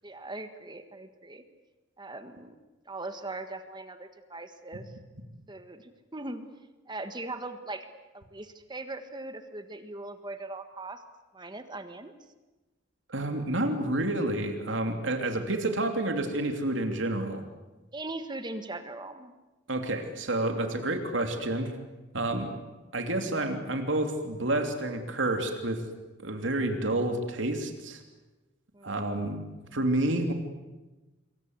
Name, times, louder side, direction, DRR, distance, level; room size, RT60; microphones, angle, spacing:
voice 1, 0.0-1.4 2.0-2.5 2.8-4.8 5.5-6.4 6.9-7.9 8.1-11.0 11.3-12.1 17.9-19.3 28.7-28.9, right 2 dB, 25° right, 8 dB, 1.7 m, -40 dB
voice 2, 13.1-17.4 19.7-21.7 22.1-22.5 22.9-25.8 26.2-28.0 28.8-29.4 29.7-30.3, right 1 dB, 75° right, 5 dB, 2.9 m, -29 dB
27.5 x 23.0 x 8.1 m, 1.1 s
head